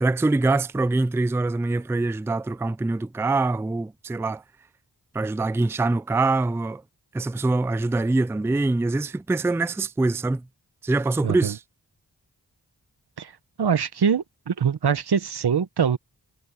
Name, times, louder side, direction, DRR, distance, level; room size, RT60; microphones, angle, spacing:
voice 1, 0.0-4.4 5.1-6.8 7.1-10.4 10.8-11.6, right 2 dB, 5° right, 0.4 m, -24 dB
voice 2, 11.2-11.5 13.2-13.3 13.6-16.0, right 7 dB, 75° right, 1.0 m, -23 dB
cardioid pair, 50°, 39 cm